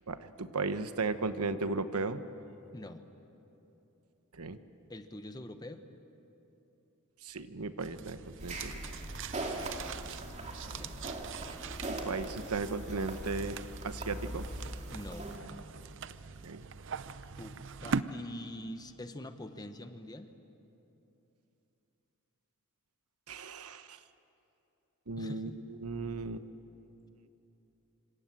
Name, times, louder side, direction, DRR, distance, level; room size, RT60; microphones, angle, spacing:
voice 1, 0.1-2.2 4.3-4.6 7.2-8.7 11.0-11.2 11.9-13.6 13.8-14.5 16.4-16.6 23.3-24.0 25.1-26.4, right 3 dB, 80° right, 11 dB, 1.1 m, -36 dB
voice 2, 2.7-3.0 4.9-5.8 10.6-10.9 14.9-15.3 17.4-17.6 17.8-20.3 25.2-25.6, left 1 dB, 15° left, 8 dB, 1.1 m, -44 dB
sound 1, 7.8-18.0, right 5 dB, 55° right, 0.7 m, -42 dB
sound 2, 8.4-15.4, right 1 dB, 30° right, 2.6 m, -41 dB
27.0 x 25.5 x 7.6 m, 2.9 s
head